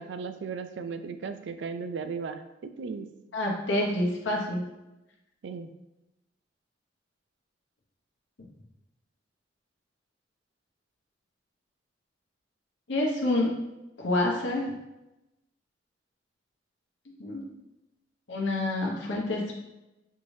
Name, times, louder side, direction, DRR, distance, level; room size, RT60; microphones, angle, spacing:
voice 1, 0.0-3.1 5.4-5.7, right 5 dB, 75° right, 9 dB, 0.4 m, -36 dB
voice 2, 3.3-4.6 12.9-13.6 14.0-14.7 17.2-17.4 18.3-19.5, left 1 dB, 90° left, -2 dB, 0.8 m, -27 dB
4.6 x 2.7 x 3.2 m, 0.95 s
head